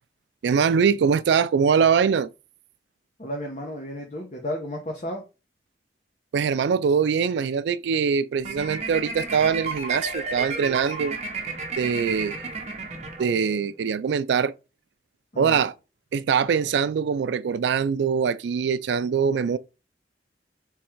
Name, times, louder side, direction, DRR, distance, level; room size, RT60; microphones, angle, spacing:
voice 1, 0.4-2.3 6.3-11.2 11.8-12.5 13.2-14.5 15.4-15.7 16.1-19.6, right 6 dB, 70° right, 0.3 m, -23 dB
voice 2, 3.2-5.2 15.3-15.7, equal, 40° left, 0.9 m, -33 dB
sound 1, 8.4-13.7, right 4 dB, 35° right, 0.9 m, -32 dB
3.7 x 3.1 x 4.5 m
head